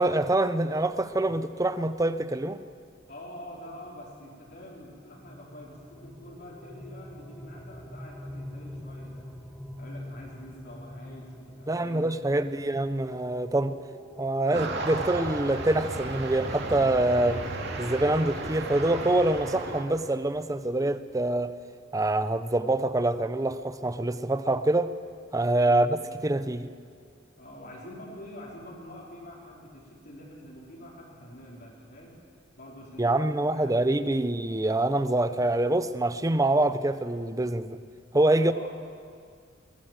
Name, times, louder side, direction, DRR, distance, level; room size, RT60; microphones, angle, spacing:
voice 1, 0.0-2.6 11.7-13.8 14.2-17.4 17.8-21.5 21.9-24.9 25.3-26.7 33.0-37.8 38.1-38.5, right 2 dB, 20° right, 12 dB, 0.7 m, -25 dB
voice 2, 3.1-9.3 9.8-12.7 27.4-32.2 32.6-33.7 38.3-38.7, equal, 55° left, -5 dB, 4.6 m, -46 dB
sound 1, 4.8-19.5, left 1 dB, 10° left, 1.2 m, -46 dB
sound 2, 14.5-19.8, right 2 dB, 60° right, 2.5 m, -34 dB
22.5 x 18.0 x 7.6 m, 2.1 s
head